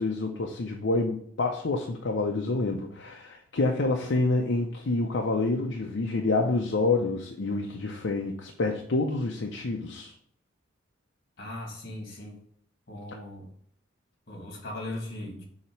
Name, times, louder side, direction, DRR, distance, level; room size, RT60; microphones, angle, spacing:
voice 1, 0.0-10.1, left 2 dB, 75° left, 2 dB, 0.6 m, -28 dB
voice 2, 11.4-12.4 12.9-13.5 14.3-15.4, left 1 dB, 55° left, 0 dB, 2.1 m, -38 dB
7.1 x 2.9 x 4.5 m, 0.63 s
head